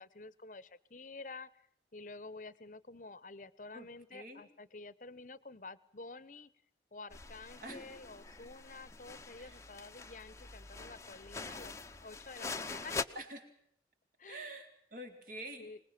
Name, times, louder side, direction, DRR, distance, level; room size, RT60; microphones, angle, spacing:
voice 1, 0.0-1.5 1.9-6.5 6.9-13.0 14.2-14.6 15.6-15.8, left 3 dB, 45° left, 18 dB, 1.0 m, -50 dB
voice 2, 3.7-4.4 7.6-7.8 9.4-9.6 13.1-13.5 14.2-15.7, right 1 dB, 50° right, 4 dB, 4.0 m, -47 dB
sound 1, 7.1-13.0, left 3 dB, 15° left, 0.9 m, -44 dB
25.0 x 20.5 x 7.6 m, 0.67 s
head